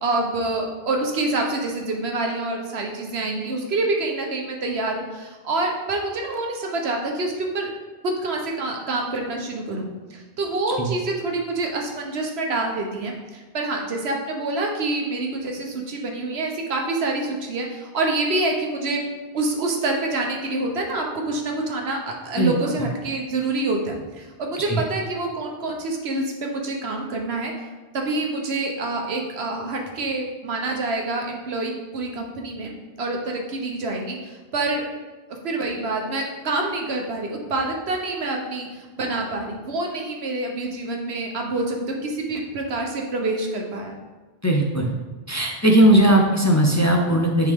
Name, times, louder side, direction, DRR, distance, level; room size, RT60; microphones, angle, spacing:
voice 1, 0.0-7.7 8.0-19.0 19.3-27.5 27.9-32.7 33.0-34.9 35.4-38.7 39.0-44.0, right 2 dB, 90° right, 1 dB, 1.3 m, -27 dB
voice 2, 44.4-44.9 45.3-47.5, right 1 dB, 20° left, 0 dB, 0.6 m, -18 dB
9.3 x 3.6 x 3.6 m, 1.3 s
omnidirectional pair, 1.0 m